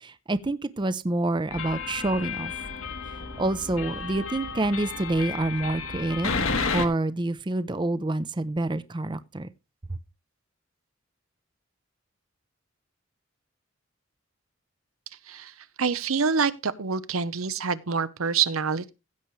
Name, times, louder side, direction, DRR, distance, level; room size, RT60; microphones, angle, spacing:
voice 1, 0.0-2.5 3.4-6.3 6.7-9.5, right 2 dB, 20° right, 0.6 m, -27 dB
sound 1, 1.5-6.9, left 4 dB, 75° left, 1.4 m, -32 dB
voice 2, 15.3-18.9, right 5 dB, 90° right, 0.8 m, -26 dB
16.0 x 6.8 x 3.2 m
head